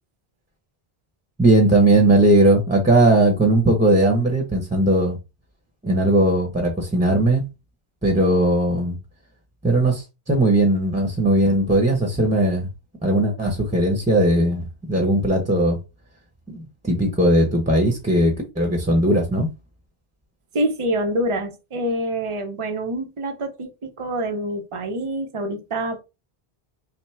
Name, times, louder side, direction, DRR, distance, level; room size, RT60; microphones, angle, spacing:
voice 1, 1.4-5.2 5.8-7.4 8.0-9.0 9.6-12.7 13.0-15.8 16.5-19.5, right 1 dB, 10° right, 0.9 m, -18 dB
voice 2, 20.5-26.0, right 1 dB, 35° right, 0.7 m, -26 dB
5.7 x 2.1 x 3.4 m
omnidirectional pair, 1.0 m